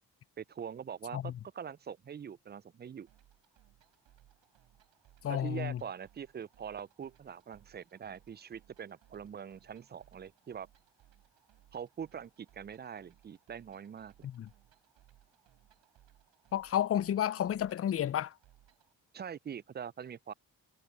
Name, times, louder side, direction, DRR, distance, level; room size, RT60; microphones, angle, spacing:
voice 1, 0.4-3.1 5.3-10.7 11.7-14.3 19.1-20.3, right 7 dB, 25° right, 0.4 m, -43 dB
sound 1, 3.1-18.9, right 12 dB, 75° right, 4.1 m, -66 dB
voice 2, 5.2-5.8 14.2-14.5 16.5-18.3, left 10 dB, 30° left, 0.5 m, -31 dB
hypercardioid pair, 45°, 45 cm